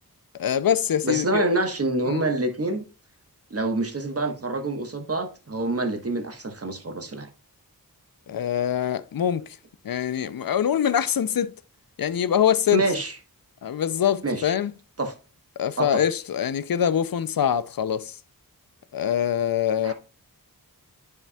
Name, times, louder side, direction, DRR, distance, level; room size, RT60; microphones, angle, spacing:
voice 1, 0.3-1.5 2.1-2.2 8.3-9.5 9.8-11.5 12.0-12.8 13.6-14.7 15.6-18.2 18.9-19.9, left 9 dB, 70° left, 0.5 m, -24 dB
voice 2, 1.0-2.8 3.5-7.3 12.7-13.2 14.2-14.5 15.0-15.1 15.8-16.0 19.8-19.9, right 2 dB, 40° right, 1.2 m, -26 dB
9.8 x 4.4 x 2.3 m
wide cardioid pair, 60°, 37 cm